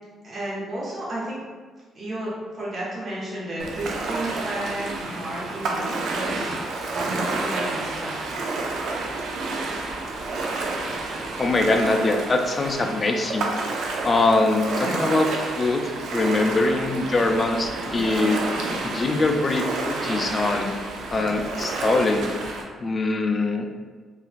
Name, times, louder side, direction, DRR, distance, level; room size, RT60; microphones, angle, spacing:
voice 1, 0.2-1.4 1.9-6.5 6.9-8.4, right 1 dB, 45° right, -7 dB, 0.9 m, -32 dB
Ocean, 3.6-22.6, right 3 dB, 75° right, 0.4 m, -30 dB
voice 2, 11.4-13.5 14.0-18.6 18.8-20.8 21.1-22.3 22.8-23.7, left 2 dB, 35° left, 4 dB, 0.3 m, -23 dB
2.8 x 2.3 x 2.4 m, 1.4 s
cardioid pair, 90°, 0 cm